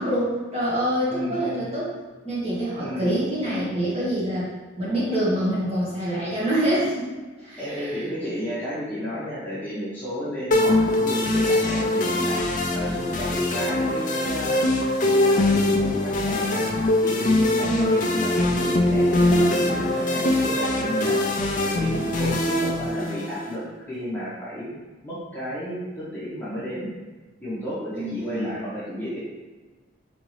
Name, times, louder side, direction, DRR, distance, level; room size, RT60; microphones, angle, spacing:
voice 1, 0.0-1.9 2.2-4.5 4.8-7.1 7.4-8.0 17.6-18.1 27.9-28.6, right 1 dB, 30° right, -9 dB, 1.4 m, -26 dB
voice 2, 1.1-1.7 2.8-3.2 7.6-12.4 12.7-14.6 15.0-16.7 17.0-21.2 21.6-24.7 25.0-26.9 27.4-29.2, equal, 10° left, -11 dB, 1.0 m, -32 dB
sound 1, 10.5-23.5, left 1 dB, 40° left, 0.4 m, -22 dB
3.9 x 3.5 x 3.2 m, 1.3 s
head